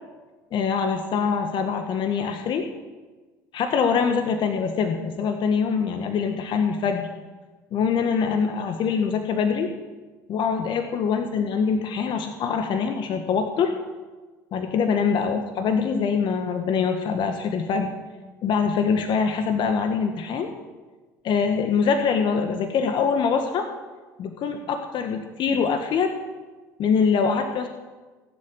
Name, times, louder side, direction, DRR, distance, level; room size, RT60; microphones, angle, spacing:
voice 1, 0.5-2.7 3.5-7.1 7.7-9.7 10.3-13.7 14.5-17.9 18.4-20.5 21.2-23.7 24.2-26.1 26.8-27.7, left 6 dB, 50° left, 6 dB, 1.6 m, -24 dB
18.5 x 7.7 x 9.4 m, 1.3 s
hypercardioid pair, 70°, 10 cm